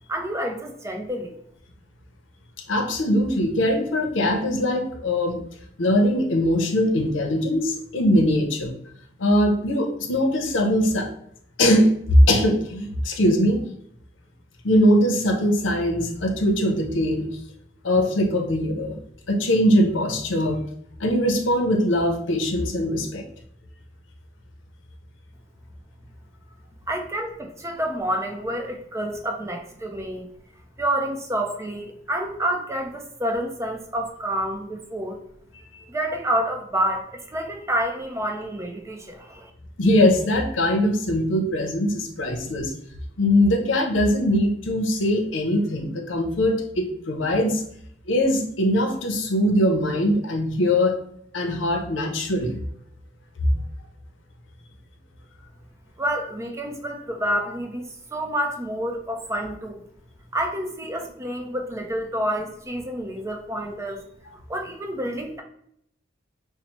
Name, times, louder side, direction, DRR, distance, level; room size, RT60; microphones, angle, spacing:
voice 1, 0.1-1.4 26.9-30.3 30.8-35.2 35.9-39.5 56.0-59.8 60.3-64.0 64.5-65.4, right 1 dB, 15° right, 3 dB, 0.5 m, -28 dB
voice 2, 2.7-5.4 5.8-8.7 9.2-11.1 11.6-13.7 14.6-17.3 17.8-19.0 19.3-20.6 21.0-23.2 39.8-42.7 43.2-47.6 48.1-51.0 51.3-52.6 53.4-53.5, left 1 dB, 80° left, 4 dB, 0.7 m, -21 dB
5.4 x 2.0 x 2.9 m, 0.71 s
head